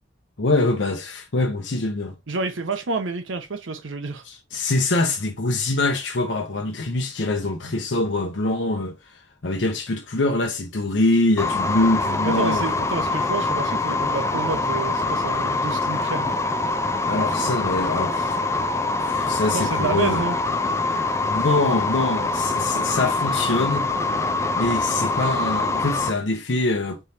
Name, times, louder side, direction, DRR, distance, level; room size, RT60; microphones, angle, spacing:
voice 1, 0.4-2.2 4.2-12.6 17.0-20.2 20.9-23.9 24.6-27.0, left 2 dB, 70° left, 0.7 m, -24 dB
voice 2, 2.3-4.2 12.2-16.3 19.5-20.4, right 3 dB, 85° right, 0.7 m, -29 dB
sound 1, 11.4-26.1, left 3 dB, 15° left, 0.4 m, -24 dB
4.5 x 3.3 x 2.8 m
head